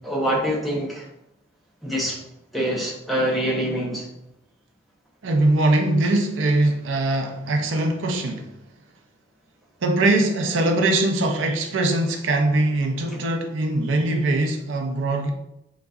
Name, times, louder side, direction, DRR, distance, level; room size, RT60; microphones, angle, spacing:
voice 1, 0.0-1.1 1.8-2.2 2.5-4.1 13.1-13.2, equal, ahead, -5 dB, 0.7 m, -25 dB
voice 2, 5.2-8.5 9.8-15.3, right 2 dB, 75° right, 3 dB, 0.5 m, -21 dB
4.0 x 3.6 x 2.3 m, 0.84 s
head